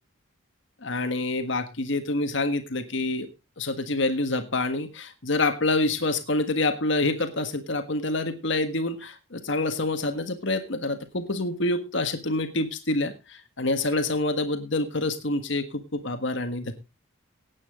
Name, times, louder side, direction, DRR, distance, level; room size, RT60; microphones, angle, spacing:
voice 1, 0.8-3.3 3.6-15.6 15.9-16.7, left 2 dB, 60° left, 8 dB, 1.6 m, -27 dB
17.5 x 8.8 x 3.7 m, 0.28 s
head